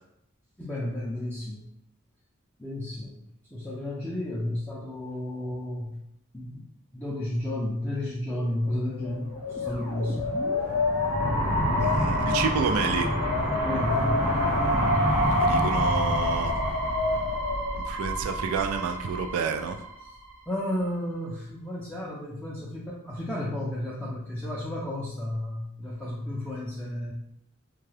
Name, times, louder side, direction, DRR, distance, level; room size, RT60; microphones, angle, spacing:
voice 1, 0.6-1.7 2.6-3.2 3.5-6.0 6.3-6.7 6.9-10.3 13.6-14.3 20.0-20.1 20.5-27.1, left 1 dB, 5° left, -6 dB, 0.4 m, -32 dB
Wind, 8.7-17.9, left 2 dB, 80° left, 0.4 m, -29 dB
sound 1, 9.4-20.3, equal, 55° right, 0.8 m, -28 dB
voice 2, 11.8-13.1 15.4-16.6 17.7-19.8, right 6 dB, 85° right, 5 dB, 0.3 m, -29 dB
2.8 x 2.3 x 3.2 m, 0.76 s
head